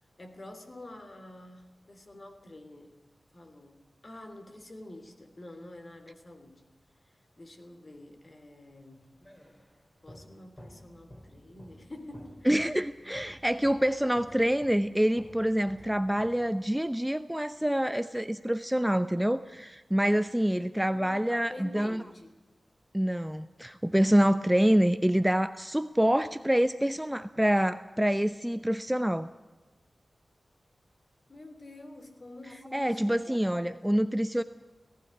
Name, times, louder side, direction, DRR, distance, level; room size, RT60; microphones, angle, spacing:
voice 1, 0.2-3.0 3.3-6.6 7.1-9.2 10.0-12.7 13.0-13.4 20.9-22.4 31.3-33.4 33.7-33.9, left 1 dB, 40° left, 6 dB, 3.2 m, -48 dB
sound 1, 8.8-16.9, equal, 20° left, 4.3 m, -53 dB
voice 2, 12.5-22.0 22.9-29.3 32.7-34.4, equal, 5° right, 11 dB, 0.7 m, -26 dB
18.5 x 15.0 x 9.9 m, 1.2 s
wide cardioid pair, 75°, 0 cm